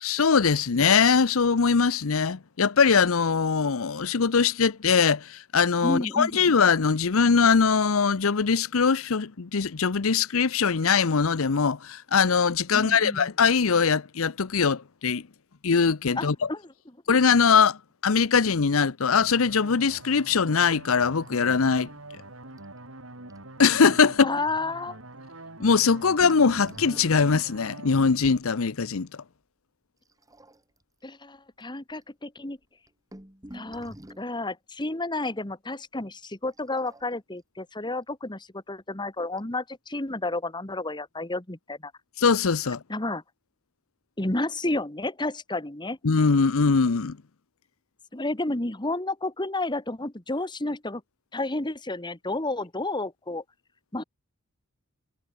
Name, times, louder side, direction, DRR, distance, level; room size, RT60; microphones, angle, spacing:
voice 1, 0.0-15.3 15.6-16.5 17.1-17.8 18.0-21.9 23.6-24.3 25.6-29.1 42.2-42.8 46.0-47.2, left 5 dB, 85° left, 0.7 m, -22 dB
voice 2, 5.8-6.5 12.7-13.3 16.2-16.6 24.2-25.0 31.0-32.6 33.5-41.9 42.9-43.2 44.2-46.0 48.1-51.0 51.3-53.4 53.9-54.0, left 2 dB, 20° left, 1.8 m, -31 dB
sound 1, 19.1-28.1, right 2 dB, 75° right, 6.9 m, -45 dB
sound 2, 21.3-21.9 22.2-22.3 22.6-22.8 23.3-23.4 25.9-28.4 30.1-30.8 31.6-31.7 31.9-32.0 32.6-34.3 36.5-37.4 38.7-38.8 39.4-39.5, equal, 15° right, 3.0 m, -47 dB
head